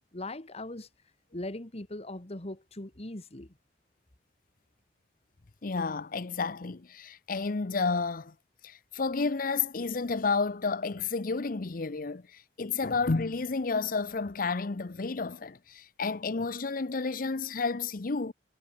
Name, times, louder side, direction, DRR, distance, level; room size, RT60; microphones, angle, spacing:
voice 1, 0.1-0.9 1.3-3.6, left 1 dB, 35° left, 1.9 m, -40 dB
voice 2, 5.6-8.3 8.6-12.2 12.6-18.3, left 4 dB, 55° left, 0.7 m, -31 dB
head